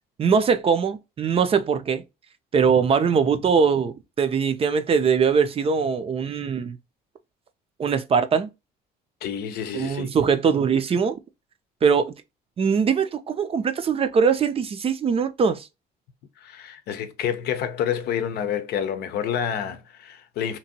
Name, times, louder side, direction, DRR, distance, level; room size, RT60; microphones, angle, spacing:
voice 1, 0.2-2.0 2.5-6.8 7.8-8.5 9.7-11.2 11.8-12.1 12.6-15.7, right 6 dB, 35° right, 0.4 m, -21 dB
voice 2, 9.2-10.1 16.4-20.6, left 9 dB, 70° left, 0.6 m, -28 dB
2.9 x 2.6 x 2.7 m
cardioid pair, 110°, 17 cm